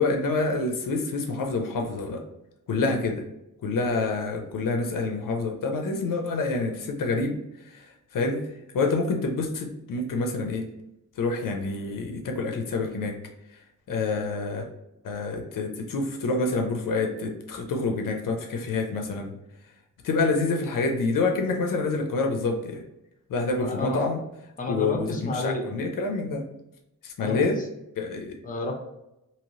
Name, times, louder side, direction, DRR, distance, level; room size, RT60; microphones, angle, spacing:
voice 1, 0.0-2.2 2.7-3.2 3.6-7.4 7.7-8.4 8.7-10.7 11.2-13.2 13.9-14.7 15.0-19.3 20.0-22.8 23.3-24.2 24.7-26.4 27.0-27.6 28.0-28.4, left 3 dB, 85° left, 3 dB, 0.6 m, -27 dB
voice 2, 23.6-24.1 24.6-25.7 27.2-27.6 28.4-28.7, left 2 dB, 25° left, 1 dB, 0.7 m, -31 dB
3.0 x 2.8 x 2.7 m, 0.89 s
wide cardioid pair, 90°, 32 cm